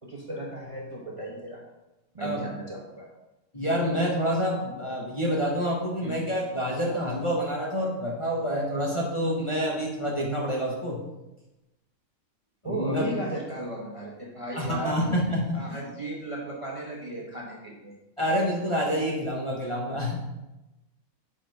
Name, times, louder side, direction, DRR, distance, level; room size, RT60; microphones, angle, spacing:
voice 1, 0.0-1.6 2.1-3.1 6.0-6.2 12.6-15.1 15.5-17.9, right 1 dB, 30° right, -3 dB, 0.8 m, -35 dB
voice 2, 3.5-11.0 12.6-13.1 14.6-15.8 18.2-20.2, equal, 25° left, -3 dB, 0.9 m, -27 dB
7.5 x 3.8 x 4.4 m, 1.0 s
omnidirectional pair, 1.4 m